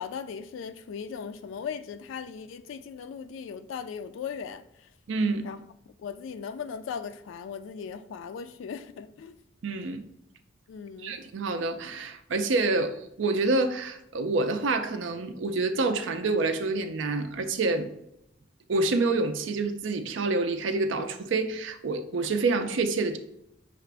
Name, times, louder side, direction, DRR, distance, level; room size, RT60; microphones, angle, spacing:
voice 1, 0.0-4.9 5.4-5.6 6.0-9.4 10.7-11.2, left 6 dB, 80° left, 0.3 m, -38 dB
voice 2, 5.1-5.5 9.6-10.0 11.0-17.9 18.7-23.2, right 3 dB, 75° right, 0.4 m, -27 dB
5.7 x 2.4 x 3.3 m
head